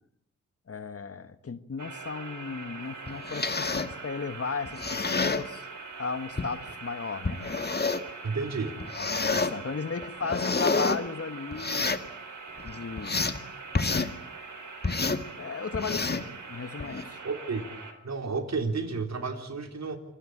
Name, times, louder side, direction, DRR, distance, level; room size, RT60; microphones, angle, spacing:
voice 1, 0.7-5.7 6.0-7.4 9.0-12.0 12.6-13.2 13.8-14.1 15.4-17.2, left 5 dB, 50° left, 12 dB, 1.7 m, -35 dB
sound 1, 1.8-17.9, right 4 dB, 75° right, 3.7 m, -43 dB
sound 2, 3.1-3.9 4.7-5.5 6.4-6.5 7.2-8.1 8.8-9.5 10.0-11.0 11.5-12.1 12.6-13.4 13.7-14.1 14.8-15.2 15.7-16.3 16.8-17.0, left 3 dB, 30° left, 2.0 m, -28 dB
voice 2, 8.2-8.8 17.2-17.6 18.0-20.0, right 4 dB, 60° right, 6 dB, 4.0 m, -31 dB
27.0 x 19.5 x 8.8 m, 0.74 s
cardioid pair, 60°, 31 cm